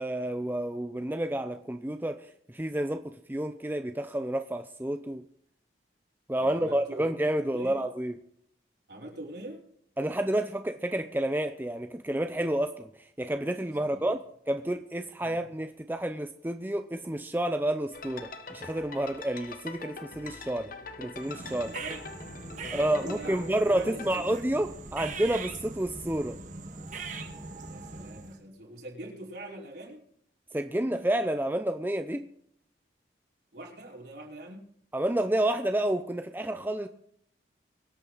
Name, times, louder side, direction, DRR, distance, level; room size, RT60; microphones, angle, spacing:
voice 1, 0.0-2.2 2.5-5.2 6.3-8.1 10.0-12.9 13.2-14.2 14.5-20.7 21.0-21.8 22.7-26.4 30.5-32.3 34.9-36.9, right 1 dB, 10° right, 7 dB, 0.6 m, -30 dB
voice 2, 6.4-7.1 7.5-7.8 8.9-9.6 13.8-14.1 15.2-15.4 21.6-22.1 22.6-24.4 27.6-30.0 33.5-34.7, right 1 dB, 65° right, -2 dB, 4.9 m, -44 dB
sound 1, 17.9-24.2, left 3 dB, 50° left, 1.3 m, -43 dB
sound 2, 21.1-28.4, right 4 dB, 45° right, 1.9 m, -41 dB
24.0 x 8.9 x 4.1 m, 0.67 s
head